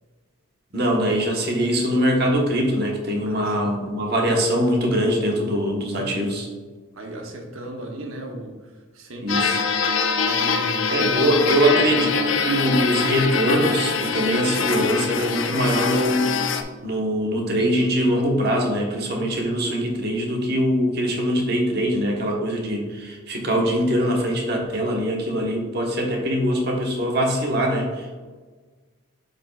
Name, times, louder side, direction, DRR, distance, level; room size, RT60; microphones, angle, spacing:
voice 1, 0.7-6.5 9.2-9.6 10.9-16.6 16.8-28.2, equal, 50° right, 0 dB, 1.1 m, -22 dB
voice 2, 3.2-3.8 6.0-6.2 6.9-9.7 10.2-11.7, right 1 dB, 80° right, 2 dB, 1.0 m, -37 dB
sound 1, 9.3-16.6, left 5 dB, 65° left, 0.5 m, -23 dB
7.8 x 5.2 x 2.4 m, 1.4 s
head